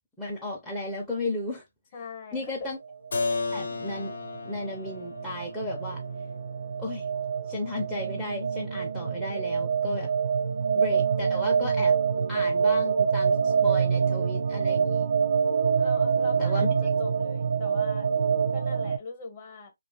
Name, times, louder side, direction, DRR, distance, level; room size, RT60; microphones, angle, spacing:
voice 1, 0.2-1.6 2.3-2.8 3.5-4.1 4.4-6.0 6.8-7.1 7.5-10.1 10.7-12.0 12.3-15.1 16.4-16.7, left 2 dB, ahead, 0.5 m, -34 dB
voice 2, 1.9-2.7 15.8-18.1 18.5-19.7, left 4 dB, 30° left, 0.8 m, -42 dB
sound 1, 2.9-19.0, right 6 dB, 55° right, 0.3 m, -26 dB
Keyboard (musical), 3.1-8.7, left 3 dB, 70° left, 0.7 m, -36 dB
2.4 x 2.3 x 2.8 m
hypercardioid pair, 160°, 0 cm